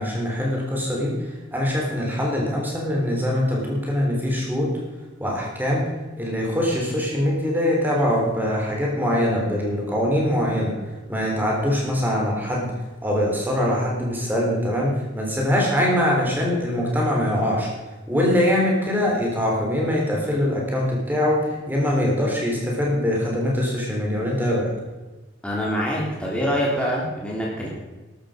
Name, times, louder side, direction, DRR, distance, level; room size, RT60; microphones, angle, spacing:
voice 1, 0.0-4.7 5.2-5.9 6.2-10.8 11.1-12.7 13.0-17.7 18.1-24.7, left 1 dB, 10° right, -2 dB, 4.0 m, -23 dB
voice 2, 25.4-27.7, equal, 5° left, -4 dB, 3.4 m, -25 dB
13.5 x 12.5 x 5.2 m, 1.2 s
head